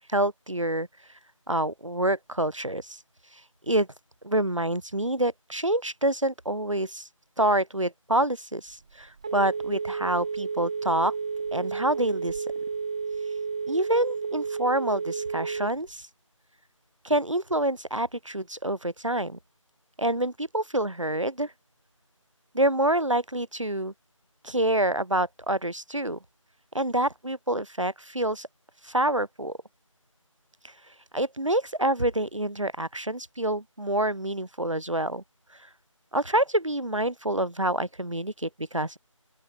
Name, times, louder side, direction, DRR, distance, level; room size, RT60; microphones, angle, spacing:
voice 1, 0.1-0.9 1.5-3.0 3.7-3.9 4.2-7.1 7.4-11.1 11.5-12.4 13.7-16.0 17.0-19.4 20.0-21.5 22.5-23.9 24.4-26.2 26.7-28.5 28.8-29.6 31.1-35.2 36.1-39.0, right 1 dB, 65° right, 3.9 m, -27 dB
Telephone, 8.7-16.0, right 5 dB, 10° right, 1.7 m, -32 dB
open air
figure-of-eight pair, 170°, 17 cm